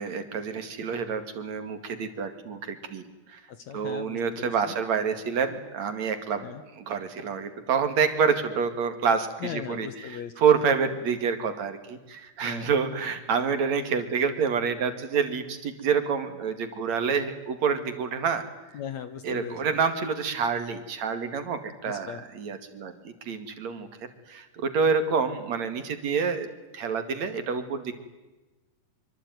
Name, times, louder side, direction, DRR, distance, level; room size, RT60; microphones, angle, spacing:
voice 1, 0.0-3.0 3.3-3.4 3.7-6.4 6.8-18.4 19.2-23.9 24.3-26.5 26.7-27.9, right 6 dB, 50° right, 8 dB, 3.1 m, -27 dB
voice 2, 3.5-4.8 6.4-6.6 9.4-10.3 12.4-12.7 18.7-19.7 21.8-22.2, left 8 dB, 65° left, 11 dB, 1.9 m, -38 dB
25.0 x 25.0 x 9.5 m, 1.1 s
omnidirectional pair, 4.5 m